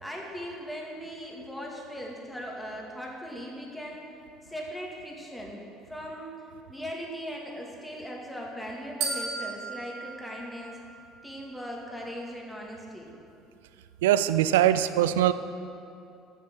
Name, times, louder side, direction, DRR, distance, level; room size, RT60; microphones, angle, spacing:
voice 1, 0.0-4.1 4.4-6.4 6.7-10.8 11.2-13.1, equal, 5° left, -2 dB, 2.1 m, -39 dB
sound 1, 9.0-11.3, right 4 dB, 65° right, 1.8 m, -35 dB
voice 2, 14.0-15.3, right 12 dB, 85° right, 13 dB, 0.3 m, -22 dB
9.0 x 6.6 x 6.2 m, 2.6 s
hypercardioid pair, 80°, 0 cm